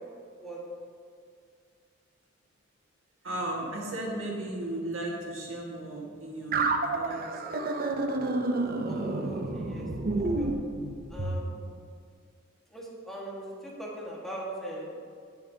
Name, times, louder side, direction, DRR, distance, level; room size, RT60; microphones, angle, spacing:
voice 1, 3.2-7.8, right 1 dB, 90° right, -3 dB, 1.8 m, -36 dB
sound 1, 6.5-11.4, right 3 dB, 50° right, 0.6 m, -29 dB
voice 2, 8.9-10.5 11.1-11.5 12.7-15.0, right 1 dB, ahead, -5 dB, 1.6 m, -40 dB
17.0 x 5.8 x 2.8 m, 2.2 s
head